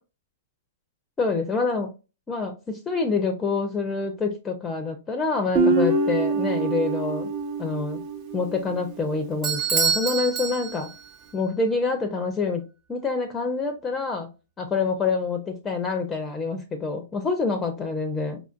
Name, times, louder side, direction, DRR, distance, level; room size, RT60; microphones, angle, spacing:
voice 1, 1.2-1.9 2.3-7.3 7.6-8.0 8.3-10.9 11.3-12.6 12.9-14.3 14.6-18.4, left 4 dB, 15° left, 0.6 m, -26 dB
Guitar, 5.5-8.8, right 3 dB, 40° right, 0.7 m, -25 dB
Bell / Doorbell, 9.4-11.1, right 6 dB, 20° right, 1.2 m, -26 dB
4.9 x 2.4 x 2.4 m
hypercardioid pair, 115°, 0 cm